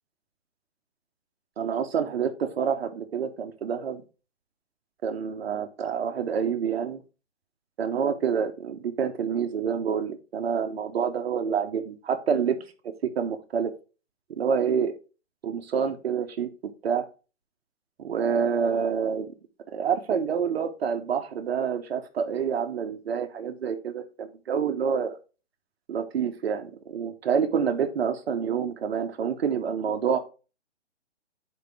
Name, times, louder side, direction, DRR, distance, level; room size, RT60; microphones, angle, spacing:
voice 1, 1.6-4.0 5.0-7.0 7.8-12.6 13.0-13.7 14.4-14.9 15.4-16.5 16.8-17.1 18.0-19.3 19.7-25.2 25.9-30.2, right 7 dB, 55° right, 6 dB, 1.1 m, -27 dB
6.7 x 5.1 x 4.8 m, 0.33 s
figure-of-eight pair, 135°, 36 cm